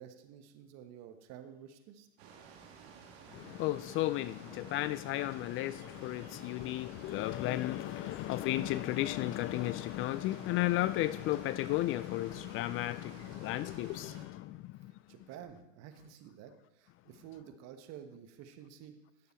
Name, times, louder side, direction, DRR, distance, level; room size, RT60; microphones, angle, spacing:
voice 1, 0.0-2.1 15.1-19.0, right 9 dB, 50° right, 1.3 m, -51 dB
sound 1, 2.2-14.2, right 6 dB, 70° right, 2.3 m, -54 dB
voice 2, 3.3-14.7, left 16 dB, 40° left, 0.4 m, -34 dB
14.5 x 6.8 x 4.4 m
hypercardioid pair, 90°, 33 cm